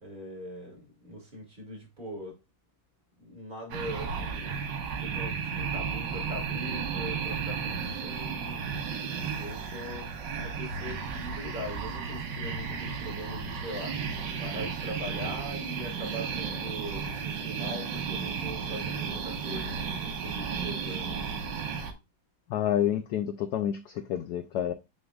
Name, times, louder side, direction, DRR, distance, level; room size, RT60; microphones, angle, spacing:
voice 1, 0.0-2.4 3.2-4.7 5.0-9.0 9.3-14.1 14.4-21.2, equal, 25° right, 2.1 m, -41 dB
sound 1, 3.7-21.9, right 6 dB, 60° right, 1.6 m, -34 dB
voice 2, 22.5-24.7, left 10 dB, 75° left, 0.9 m, -29 dB
7.0 x 6.4 x 2.3 m
omnidirectional pair, 2.3 m